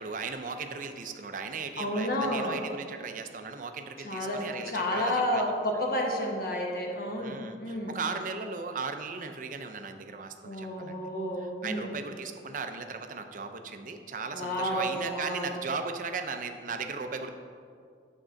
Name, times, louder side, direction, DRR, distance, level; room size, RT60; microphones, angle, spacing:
voice 1, 0.0-5.5 7.2-11.0 11.4-17.3, right 4 dB, 45° right, 7 dB, 0.5 m, -37 dB
voice 2, 1.8-2.6 4.0-8.0 10.4-11.9 14.3-15.5, left 1 dB, 55° left, 0 dB, 1.1 m, -31 dB
8.7 x 3.7 x 6.3 m, 2.2 s
head